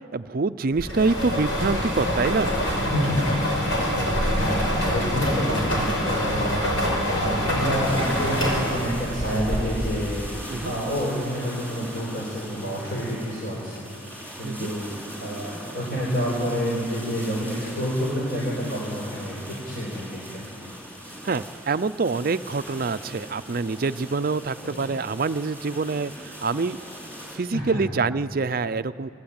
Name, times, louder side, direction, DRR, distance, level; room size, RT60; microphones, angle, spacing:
voice 1, 0.1-2.6 10.5-10.7 14.4-14.7 21.2-26.8 27.3-29.1, right 4 dB, 45° right, 12 dB, 0.5 m, -26 dB
sound 1, 0.8-10.1, equal, 80° left, 6.0 m, -25 dB
voice 2, 2.6-3.9 4.2-13.7 14.4-14.9 15.2-20.5 24.6-24.8 27.5-27.8, equal, 50° left, -5 dB, 4.7 m, -29 dB
sound 2, 7.8-27.4, equal, 10° left, 4.6 m, -40 dB
27.0 x 18.0 x 8.9 m, 2.9 s
head